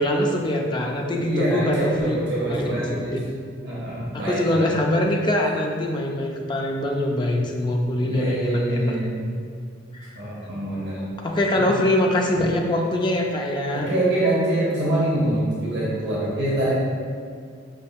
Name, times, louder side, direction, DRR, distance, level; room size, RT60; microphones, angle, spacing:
voice 1, 0.0-2.2 2.4-2.6 3.0-3.2 4.1-9.0 9.9-10.1 11.2-14.0, left 1 dB, 25° left, 0 dB, 0.3 m, -23 dB
voice 2, 1.1-3.2 3.6-4.7 8.0-9.2 10.1-11.0 11.6-11.7 13.7-16.7, right 1 dB, 60° right, -7 dB, 0.8 m, -25 dB
5.1 x 3.5 x 2.3 m, 2.2 s
head